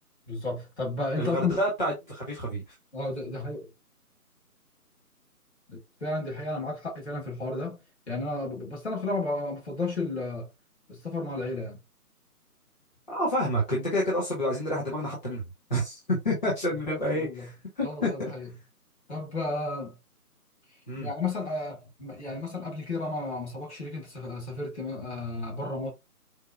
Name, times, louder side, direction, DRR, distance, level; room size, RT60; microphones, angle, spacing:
voice 1, 0.3-1.6 2.9-3.7 5.7-7.8 8.1-10.5 10.9-11.8 16.9-17.5 17.8-18.5 19.1-20.0 21.0-25.9, left 2 dB, 45° left, 1.7 m, -33 dB
voice 2, 1.2-2.6 13.1-15.4 15.7-18.3 20.9-21.1, equal, 30° left, 1.0 m, -29 dB
4.6 x 2.0 x 2.4 m
figure-of-eight pair, 150°, 46 cm